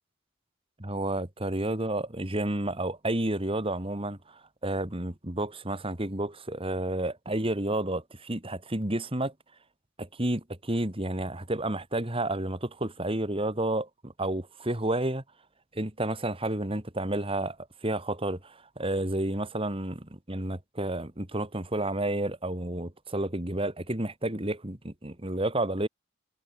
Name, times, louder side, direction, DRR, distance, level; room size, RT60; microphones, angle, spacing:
voice 1, 0.8-9.3 10.0-15.2 15.7-17.6 17.8-25.9, right 1 dB, 25° right, 2.3 m, -31 dB
head